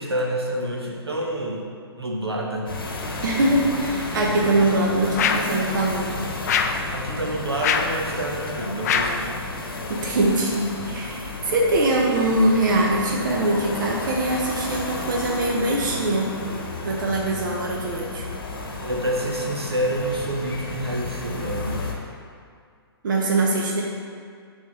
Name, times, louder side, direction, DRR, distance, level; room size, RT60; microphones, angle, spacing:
voice 1, 0.0-1.6 2.0-2.7 6.9-9.4 18.8-21.9, right 1 dB, 75° right, 0 dB, 1.0 m, -28 dB
sound 1, 2.7-21.9, left 2 dB, 60° left, 1.0 m, -32 dB
voice 2, 3.2-6.2 9.9-16.3 16.8-18.3 23.0-23.8, right 1 dB, 50° right, -1 dB, 0.8 m, -22 dB
sound 2, 5.2-5.6 6.5-6.9 7.6-8.0 8.8-9.2, left 7 dB, 40° left, 0.4 m, -23 dB
7.3 x 3.6 x 4.1 m, 2.1 s
figure-of-eight pair, 120°, 13 cm